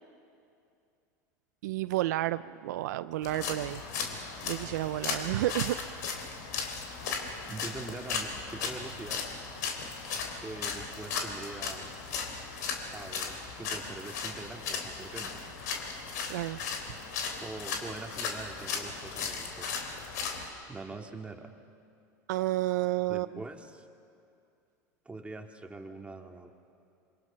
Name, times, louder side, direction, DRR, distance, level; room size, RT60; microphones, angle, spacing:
voice 1, 1.6-3.8 4.5-5.8 16.3-16.6 22.3-23.3, right 16 dB, 75° right, 14 dB, 0.5 m, -30 dB
sound 1, 3.2-20.5, left 5 dB, 80° left, 3.3 m, -36 dB
voice 2, 7.5-9.2 10.4-11.9 12.9-15.4 17.4-19.7 20.7-21.5 23.1-23.9 25.1-26.5, right 3 dB, 15° right, 3 dB, 2.3 m, -43 dB
26.0 x 24.5 x 5.7 m, 2.5 s
hypercardioid pair, 95°, 9 cm